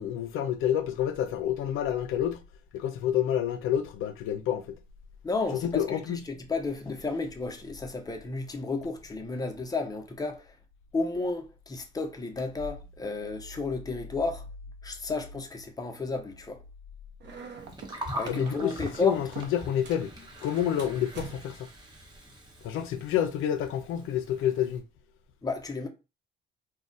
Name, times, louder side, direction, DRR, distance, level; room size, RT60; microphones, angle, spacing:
voice 1, 0.0-2.4 2.7-4.8 5.5-6.2 18.3-20.1 20.4-21.7 22.6-24.8, left 10 dB, 85° left, 0.4 m, -28 dB
voice 2, 5.2-10.6 10.9-14.4 14.8-16.6 18.1-19.2 25.4-25.9, left 3 dB, 20° left, 0.7 m, -32 dB
sound 1, 17.2-20.1 20.4-21.7, right 4 dB, 60° right, 0.7 m, -45 dB
Gurgling, 17.6-24.8, equal, 20° right, 1.0 m, -43 dB
2.3 x 2.1 x 3.9 m
cardioid pair, 90°, 20 cm